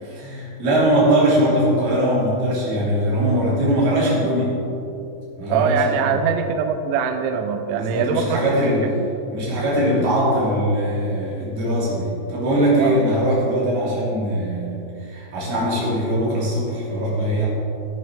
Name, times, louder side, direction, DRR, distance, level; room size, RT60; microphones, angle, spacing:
voice 1, 0.1-4.6 5.4-6.2 7.7-8.9 9.3-17.5, right 1 dB, 50° right, -7 dB, 5.0 m, -21 dB
voice 2, 5.5-8.4 8.8-9.1 12.8-13.0, right 6 dB, 85° right, 7 dB, 2.6 m, -23 dB
18.0 x 9.5 x 3.7 m, 2.8 s
omnidirectional pair, 5.9 m